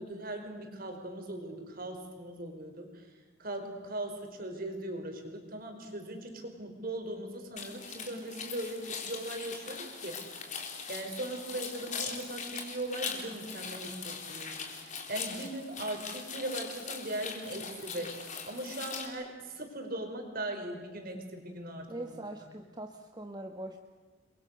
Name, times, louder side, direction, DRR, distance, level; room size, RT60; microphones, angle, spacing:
voice 1, 0.0-3.0 3.4-10.5 10.9-18.1 18.5-22.2, right 1 dB, 45° right, 4 dB, 5.0 m, -39 dB
sound 1, 7.6-19.1, left 5 dB, 40° left, 3.8 m, -41 dB
voice 2, 21.9-23.8, right 1 dB, 20° right, 4 dB, 1.3 m, -42 dB
30.0 x 23.0 x 6.6 m, 1.5 s
head